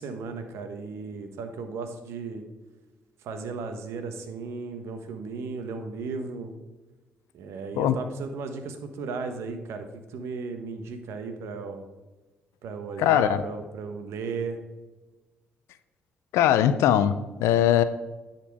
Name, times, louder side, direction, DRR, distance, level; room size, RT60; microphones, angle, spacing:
voice 1, 0.0-2.4 3.2-6.5 7.3-11.8 12.6-14.6, right 4 dB, 70° right, 7 dB, 1.2 m, -35 dB
voice 2, 13.0-13.4 16.3-17.8, left 11 dB, 75° left, 13 dB, 0.5 m, -21 dB
9.9 x 4.4 x 4.8 m, 1.2 s
hypercardioid pair, 50°, 5 cm